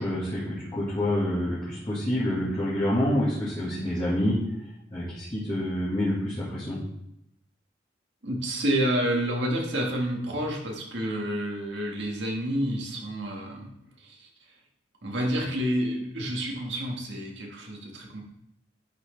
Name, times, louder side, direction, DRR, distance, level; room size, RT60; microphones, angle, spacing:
voice 1, 0.0-4.4 4.9-6.8, left 1 dB, 25° left, -10 dB, 1.8 m, -27 dB
voice 2, 8.2-13.7 14.0-14.3 15.0-18.2, equal, 70° right, -1 dB, 1.6 m, -29 dB
11.0 x 4.2 x 3.3 m, 0.81 s
head